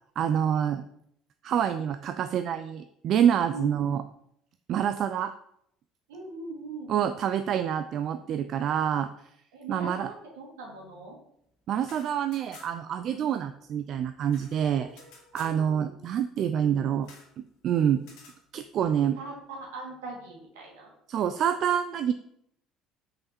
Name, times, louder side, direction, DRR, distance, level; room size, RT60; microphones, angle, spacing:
voice 1, 0.2-0.8 1.4-4.0 4.7-5.3 6.9-9.1 9.7-10.1 11.7-14.9 15.3-17.1 17.4-18.0 18.5-19.2 21.1-22.1, right 9 dB, 55° right, 10 dB, 0.4 m, -27 dB
voice 2, 6.1-6.9 9.5-11.2 13.1-13.3 14.7-15.9 19.1-20.9, right 2 dB, 75° right, -2 dB, 2.2 m, -41 dB
sound 1, 11.8-13.0 13.2-13.3 13.6-15.6 17.0-17.3 18.0-18.4, left 4 dB, 65° left, 2.1 m, -52 dB
5.8 x 5.1 x 4.3 m, 0.72 s
hypercardioid pair, 60°, 0 cm